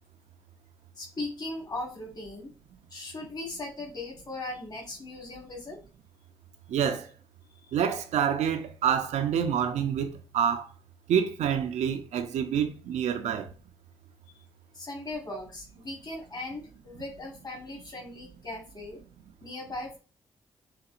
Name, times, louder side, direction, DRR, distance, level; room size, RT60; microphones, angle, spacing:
voice 1, 1.0-2.5 2.9-5.8 7.6-7.7 13.3-13.4 14.7-19.0 19.4-20.0, left 2 dB, 35° left, 1.7 m, -38 dB
voice 2, 6.7-7.1 7.7-10.1 10.3-10.7 11.1-13.5, right 8 dB, 70° right, 0.6 m, -27 dB
5.8 x 2.9 x 2.5 m
hypercardioid pair, 45°, 12 cm